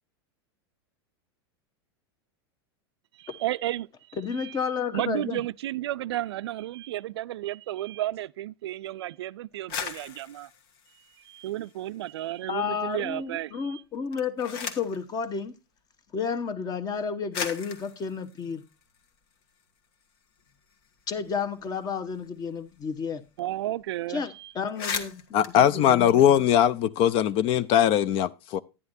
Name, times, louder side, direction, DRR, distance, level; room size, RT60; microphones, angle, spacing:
voice 1, 3.2-3.9 4.4-4.5 4.9-10.5 11.3-13.8 23.4-24.5, right 14 dB, 85° right, 0.4 m, -33 dB
voice 2, 4.2-5.4 12.5-15.5 16.1-18.6 21.1-23.2 24.1-26.1, left 6 dB, 30° left, 1.1 m, -31 dB
sound 1, 9.5-12.1 12.5-13.2 13.9-15.0 16.1-16.2 16.9-17.0 17.3-19.6 20.0-20.1 20.4-23.0 23.2-23.4 23.6-23.9 24.3-24.4 24.6-26.8, left 6 dB, 65° left, 1.5 m, -39 dB
voice 3, 25.3-28.6, left 10 dB, 45° left, 0.6 m, -21 dB
11.0 x 9.9 x 2.6 m
hypercardioid pair, 115°, 13 cm